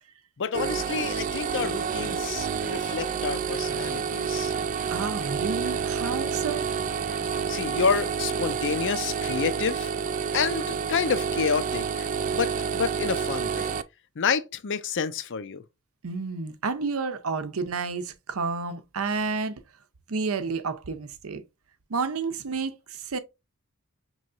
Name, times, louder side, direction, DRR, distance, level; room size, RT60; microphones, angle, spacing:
voice 1, 0.4-4.5 7.5-9.9 10.3-12.1 12.3-13.7 14.2-15.6, left 6 dB, 60° left, 0.5 m, -29 dB
sound 1, 0.5-13.8, right 6 dB, 35° right, 0.3 m, -29 dB
sound 2, 1.3-8.3, right 1 dB, 5° right, 0.7 m, -48 dB
voice 2, 4.9-6.7 16.0-19.6 20.1-21.4 21.9-23.2, right 4 dB, 70° right, 0.6 m, -30 dB
5.4 x 3.1 x 2.5 m
head